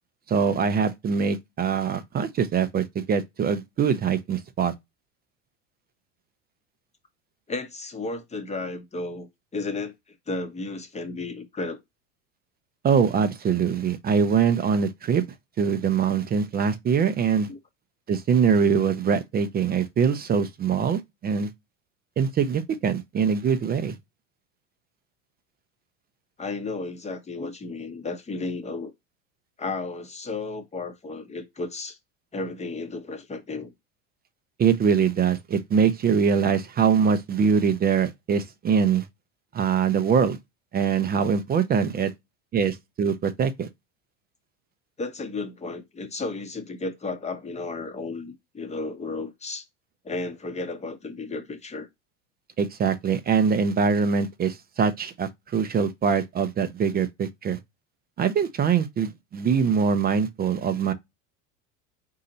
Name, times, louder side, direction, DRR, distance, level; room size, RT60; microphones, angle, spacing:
voice 1, 0.3-4.7 12.8-15.2 15.6-17.5 18.1-21.5 22.2-23.9 34.6-39.1 39.5-40.4 40.7-42.1 42.5-43.7 52.6-57.6 58.2-60.9, right 6 dB, 25° right, 0.5 m, -23 dB
voice 2, 7.5-9.3 9.5-9.9 10.3-11.8 17.5-17.6 26.4-28.9 29.6-32.0 32.3-33.7 45.0-49.6 50.0-51.9, left 3 dB, 15° left, 0.8 m, -33 dB
4.1 x 2.7 x 3.8 m
hypercardioid pair, 95°, 41 cm